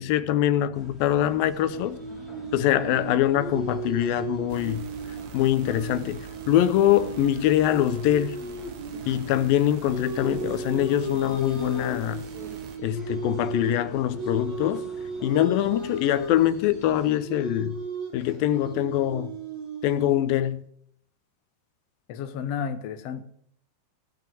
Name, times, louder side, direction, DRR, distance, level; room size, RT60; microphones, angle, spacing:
voice 1, 0.0-2.0 2.5-4.9 5.3-8.4 9.1-12.2 12.8-14.9 15.2-17.8 18.1-19.3 19.8-20.6, left 12 dB, 85° left, 2.5 m, -23 dB
sound 1, 0.7-17.1, right 1 dB, ahead, 2.0 m, -46 dB
sound 2, 1.7-9.6 9.8-20.1, right 3 dB, 50° right, 6.7 m, -35 dB
sound 3, 4.5-12.8, right 10 dB, 70° right, 2.1 m, -46 dB
voice 2, 22.1-23.2, left 7 dB, 70° left, 1.5 m, -32 dB
16.5 x 5.6 x 7.6 m
omnidirectional pair, 4.0 m